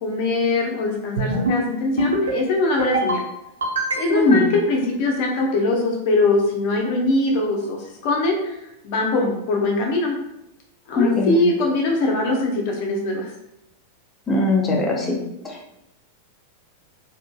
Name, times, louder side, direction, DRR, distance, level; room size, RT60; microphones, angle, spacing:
voice 1, 0.0-3.2 4.0-8.6 8.8-10.2 10.9-13.3, left 2 dB, 55° left, 0 dB, 0.6 m, -22 dB
sound 1, 1.2-1.6 2.0-2.4 2.8-3.2 3.6-4.4, right 1 dB, 85° right, 0.6 m, -23 dB
voice 2, 4.1-4.4 11.0-11.4 14.3-15.2 15.4-15.7, left 2 dB, 20° left, -1 dB, 0.6 m, -20 dB
2.7 x 2.5 x 2.2 m, 0.85 s
hypercardioid pair, 100°, 0 cm